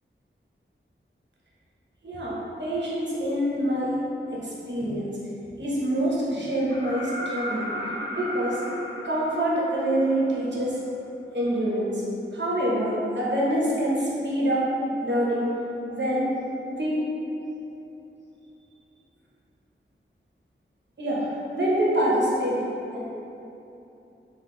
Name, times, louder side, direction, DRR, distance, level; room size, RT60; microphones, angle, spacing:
voice 1, 2.0-4.0 4.3-5.1 5.6-7.8 8.1-8.6 9.0-10.8 11.3-12.0 12.3-14.7 15.0-15.5 15.9-16.3 16.7-17.0 21.0-22.6 22.9-23.0, right 1 dB, 60° right, -6 dB, 0.7 m, -26 dB
sound 1, 6.7-10.5 12.4-12.5, equal, 25° left, 0.4 m, -35 dB
2.9 x 2.1 x 3.4 m, 3.0 s
wide cardioid pair, 70°, 21 cm